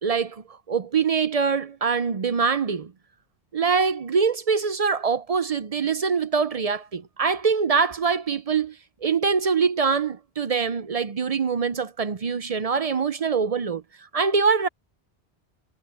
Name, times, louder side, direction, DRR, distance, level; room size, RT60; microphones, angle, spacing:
voice 1, 0.0-2.9 3.5-8.8 9.0-13.8 14.1-14.7, right 5 dB, 45° right, 0.5 m, -24 dB
omnidirectional pair, 1.1 m